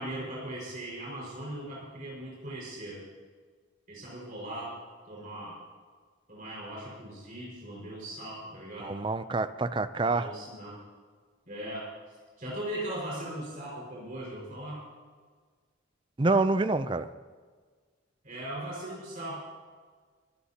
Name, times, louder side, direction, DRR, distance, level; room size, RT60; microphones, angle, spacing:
voice 1, 0.0-3.0 3.9-4.7 5.1-5.6 6.3-9.0 10.0-10.8 11.5-14.8 18.2-19.4, right 1 dB, 45° right, -5 dB, 5.2 m, -39 dB
voice 2, 8.8-10.3 16.2-17.1, right 3 dB, 25° right, 12 dB, 0.5 m, -27 dB
22.5 x 14.5 x 2.9 m, 1.5 s
head